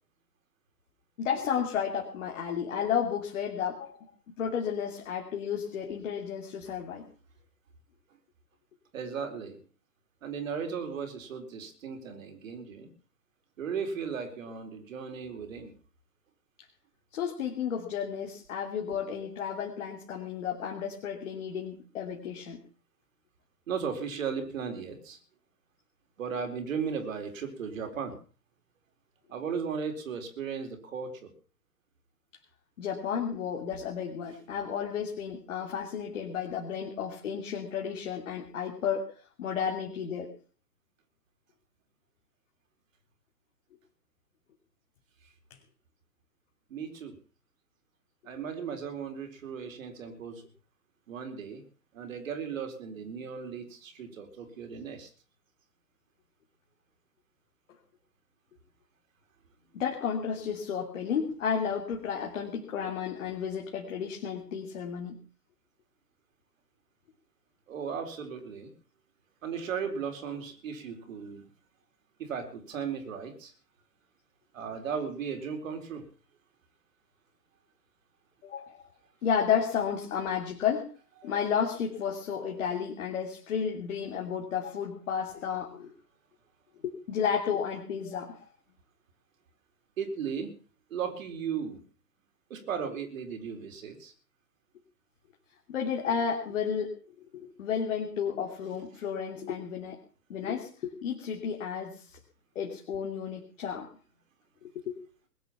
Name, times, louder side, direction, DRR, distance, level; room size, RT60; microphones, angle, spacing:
voice 1, 1.2-4.0 4.4-7.1 17.1-22.6 32.8-39.1 39.4-40.3 45.5-45.6 59.7-65.2 78.4-78.8 79.2-80.9 81.2-85.9 86.8-88.4 95.7-97.0 97.3-100.0 100.3-102.2 102.5-103.9 104.6-105.0, left 7 dB, 50° left, 0 dB, 3.1 m, -32 dB
voice 2, 8.9-9.6 10.2-12.9 13.6-15.7 23.7-25.2 26.2-28.1 29.3-31.3 46.7-47.2 48.2-50.5 51.1-51.6 51.9-55.1 67.7-68.7 69.4-71.5 72.2-73.5 74.5-76.0 90.0-90.5 90.9-91.8 92.5-94.1, right 6 dB, 50° right, 6 dB, 4.3 m, -36 dB
21.0 x 9.6 x 5.9 m, 0.40 s
figure-of-eight pair, 125°, 49 cm